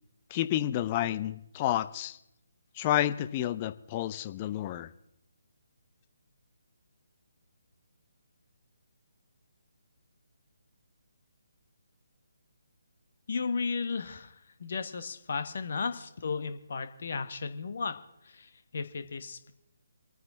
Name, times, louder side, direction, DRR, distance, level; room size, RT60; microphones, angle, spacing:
voice 1, 0.3-2.2 2.8-4.9, left 12 dB, 25° left, 13 dB, 0.5 m, -30 dB
voice 2, 13.3-14.3 14.6-18.0 18.2-19.5, left 5 dB, 45° left, 9 dB, 1.2 m, -34 dB
27.0 x 9.4 x 3.9 m, 0.82 s
figure-of-eight pair, 145°, 0 cm